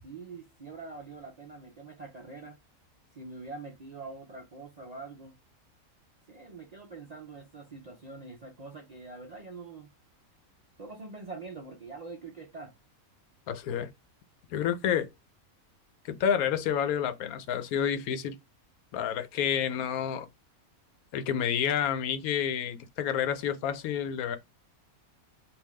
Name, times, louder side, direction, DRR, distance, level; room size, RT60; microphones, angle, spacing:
voice 1, 0.0-2.6 3.1-5.4 6.3-9.9 10.8-12.7, right 3 dB, 55° right, 0.4 m, -44 dB
voice 2, 13.5-13.9 14.5-15.1 16.0-18.3 18.9-20.3 21.1-24.4, left 8 dB, 85° left, 1.1 m, -29 dB
3.5 x 2.6 x 3.1 m
omnidirectional pair, 1.5 m